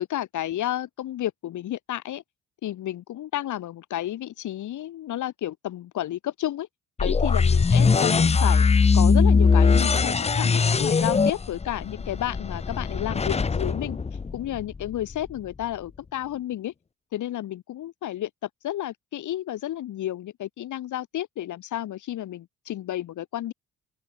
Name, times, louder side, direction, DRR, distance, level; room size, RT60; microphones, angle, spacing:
voice 1, 0.0-2.2 2.6-6.7 7.0-8.7 8.9-14.0 14.3-16.7 17.1-18.3 18.6-23.5, left 13 dB, 75° left, 4.5 m, -31 dB
sound 1, 7.0-14.9, left 5 dB, 20° left, 0.7 m, -21 dB
open air
cardioid pair, 90°, 30 cm